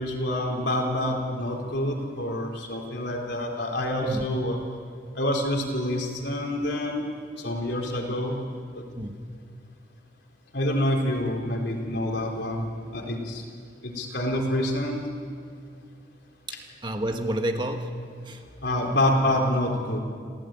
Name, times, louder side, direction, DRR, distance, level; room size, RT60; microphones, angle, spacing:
voice 1, 0.0-4.6 5.1-7.1 7.4-8.4 8.7-8.8 10.5-12.7 12.9-13.4 13.8-15.0 18.6-20.0, left 1 dB, 60° left, 1 dB, 4.0 m, -27 dB
voice 2, 9.0-9.4 16.5-16.6 16.8-18.4, right 1 dB, 25° right, 5 dB, 1.4 m, -30 dB
27.5 x 17.0 x 9.1 m, 2.1 s
head